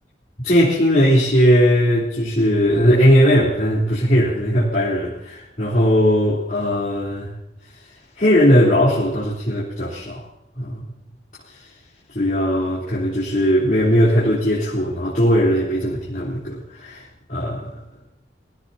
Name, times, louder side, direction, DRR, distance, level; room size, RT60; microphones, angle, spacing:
voice 1, 0.4-7.3 8.2-10.2 10.6-10.8 12.1-17.0 17.3-17.8, equal, 50° left, -8 dB, 3.7 m, -18 dB
23.5 x 16.0 x 2.9 m, 0.81 s
head